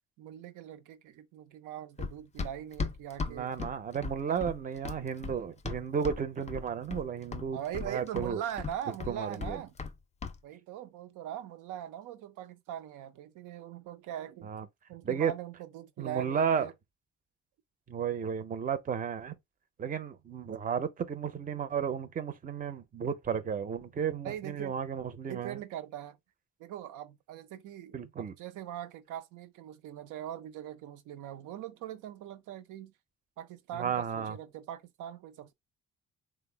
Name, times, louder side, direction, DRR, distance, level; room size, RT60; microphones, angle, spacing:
voice 1, 0.2-3.5 4.3-4.4 7.5-9.7 10.4-14.5 14.9-16.7 24.2-24.8 25.3-26.2 26.6-32.9 33.4-35.5, right 11 dB, 90° right, 0.6 m, -41 dB
Run, 2.0-6.2 6.5-7.1 7.3-9.9 10.2-10.4, left 4 dB, 25° left, 0.4 m, -37 dB
voice 2, 3.3-7.6 7.8-8.4 9.1-9.6 14.4-14.7 15.0-15.3 16.0-16.7 17.9-19.4 19.8-25.6 27.9-28.3 33.7-34.4, right 7 dB, 30° right, 0.5 m, -33 dB
3.4 x 2.0 x 3.2 m
cardioid pair, 90°, 30 cm